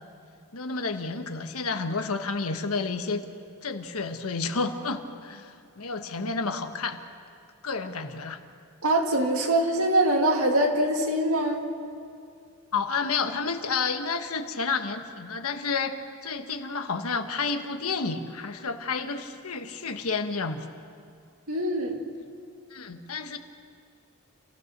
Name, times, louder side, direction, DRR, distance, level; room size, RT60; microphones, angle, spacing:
voice 1, 0.5-3.2 3.6-7.0 7.6-8.4 12.7-16.0 16.2-20.7 22.7-23.4, left 4 dB, 75° left, 7 dB, 1.3 m, -30 dB
voice 2, 8.8-11.6 21.5-22.0, right 1 dB, 70° right, 2 dB, 2.2 m, -23 dB
27.5 x 15.5 x 6.7 m, 2.4 s
head